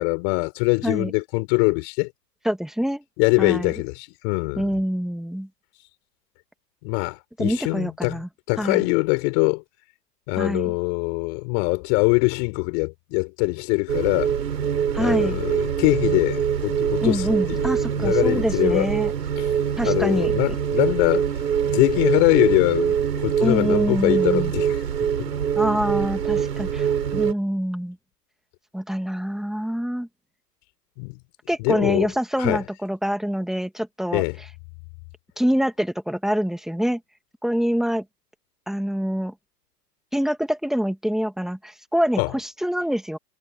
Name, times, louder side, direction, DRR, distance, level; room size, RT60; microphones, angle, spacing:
voice 1, 0.0-2.1 3.2-4.7 6.8-8.2 8.5-9.6 10.3-14.3 15.0-18.9 19.4-19.5 19.8-21.3 21.7-24.8 25.2-25.3 31.0-31.2 31.6-32.1 32.4-32.6 34.1-34.4 42.2-42.3, left 35 dB, 40° left, 4.8 m, -23 dB
voice 2, 2.4-3.0 3.4-3.7 4.6-5.5 7.4-8.3 8.6-8.8 10.4-10.7 14.9-15.4 17.0-19.1 19.8-20.3 23.4-24.5 25.6-28.0 28.7-30.1 31.5-34.2 35.4-37.0 37.4-38.0 38.7-39.3 40.1-43.2, equal, ahead, 2.4 m, -25 dB
sound 1, 13.9-27.3, right 8 dB, 75° right, 5.5 m, -24 dB
hypercardioid pair, 120°, 49 cm